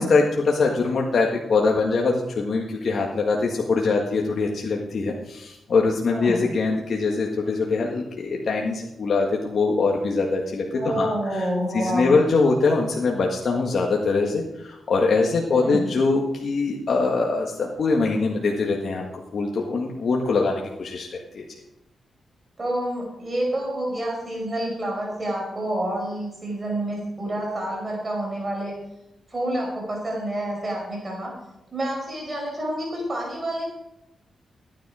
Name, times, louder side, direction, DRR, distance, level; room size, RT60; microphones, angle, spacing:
voice 1, 0.0-19.0 19.3-21.4, left 4 dB, 60° left, -1 dB, 1.7 m, -23 dB
voice 2, 6.1-6.4 10.7-12.1 15.5-15.9 22.6-28.7 29.3-31.3 31.7-33.7, right 1 dB, 30° right, -2 dB, 5.3 m, -28 dB
14.5 x 10.5 x 5.0 m, 0.88 s
cardioid pair, 85°, 0 cm